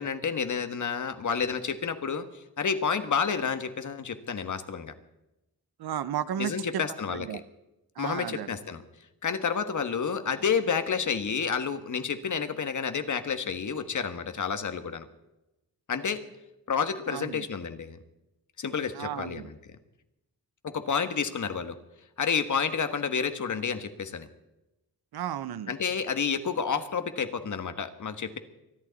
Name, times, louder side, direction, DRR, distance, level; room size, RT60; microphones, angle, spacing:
voice 1, 0.0-4.9 6.4-7.3 8.0-8.8 9.2-15.1 15.9-16.2 16.7-18.0 18.6-19.5 20.6-21.8 22.2-24.3 25.7-28.4, left 6 dB, 50° left, 9 dB, 1.4 m, -30 dB
voice 2, 5.8-6.8 7.1-7.4 8.0-8.5 17.1-17.4 18.9-19.5 25.1-25.7, right 10 dB, 75° right, 15 dB, 0.8 m, -33 dB
24.5 x 11.0 x 4.1 m, 0.93 s
wide cardioid pair, 120°, 38 cm